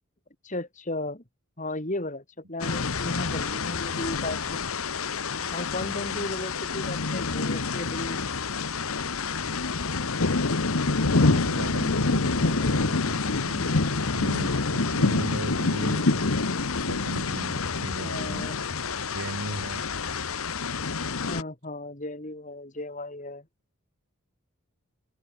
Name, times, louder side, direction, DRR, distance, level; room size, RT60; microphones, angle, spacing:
voice 1, 0.4-1.2 1.6-4.6 5.5-8.3 18.0-18.5 21.2-23.4, left 2 dB, 35° left, 2.7 m, -35 dB
sound 1, 2.6-21.4, left 3 dB, 80° left, 1.3 m, -27 dB
voice 2, 5.7-6.3 10.8-16.4 16.8-18.5 19.1-19.8, right 1 dB, 90° right, 7.5 m, -37 dB
head